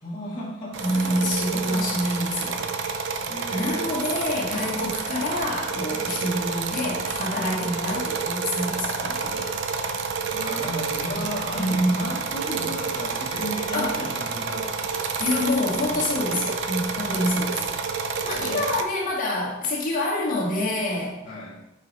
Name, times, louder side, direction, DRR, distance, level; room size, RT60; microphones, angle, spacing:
voice 1, 0.0-0.8 1.1-1.2 3.3-3.9 5.9-6.2 10.3-14.7 15.4-16.0 18.4-18.6 21.2-21.6, equal, 25° left, -9 dB, 1.5 m, -34 dB
sound 1, 0.7-18.8, right 5 dB, 60° right, 0.5 m, -29 dB
voice 2, 0.8-2.7 3.5-9.6 11.1-11.2 11.5-12.2 13.7-14.0 15.2-17.7 18.2-21.2, left 1 dB, 40° left, -4 dB, 2.0 m, -27 dB
7.3 x 5.0 x 4.1 m, 0.96 s
head